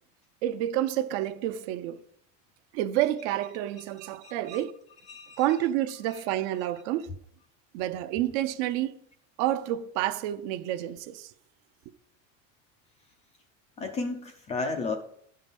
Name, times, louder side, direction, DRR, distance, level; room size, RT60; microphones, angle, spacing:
voice 1, 0.4-2.0 2.7-4.7 5.4-7.1 7.7-9.0 9.4-11.3, right 13 dB, 55° right, 0.6 m, -29 dB
voice 2, 4.2-4.6 5.1-5.4 6.1-6.2 13.8-15.0, left 3 dB, 20° left, 0.4 m, -33 dB
11.0 x 5.7 x 5.2 m
cardioid pair, 165°, 40 cm